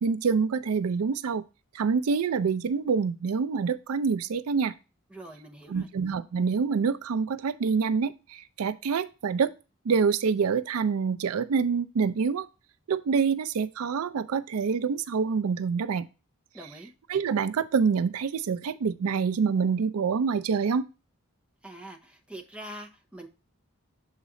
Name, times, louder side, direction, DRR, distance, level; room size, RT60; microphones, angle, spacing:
voice 1, 0.0-1.4 1.7-4.7 5.7-9.5 9.8-12.5 12.9-16.1 17.1-20.9, right 5 dB, 85° right, 14 dB, 0.4 m, -26 dB
voice 2, 5.1-5.9 16.5-16.9 21.6-23.3, right 1 dB, 5° right, 1 dB, 0.7 m, -44 dB
7.2 x 4.1 x 3.7 m, 0.30 s
head